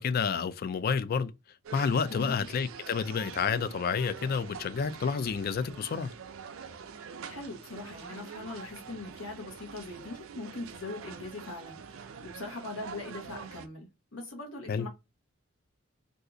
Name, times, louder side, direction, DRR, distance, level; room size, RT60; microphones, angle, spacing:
voice 1, 0.0-1.3 1.7-6.1 14.7-14.9, left 6 dB, 45° left, 0.3 m, -29 dB
sound 1, 1.6-13.7, right 6 dB, 75° right, 0.4 m, -45 dB
voice 2, 2.1-2.5 7.0-14.9, left 2 dB, 75° left, 1.0 m, -41 dB
2.7 x 2.4 x 3.7 m
head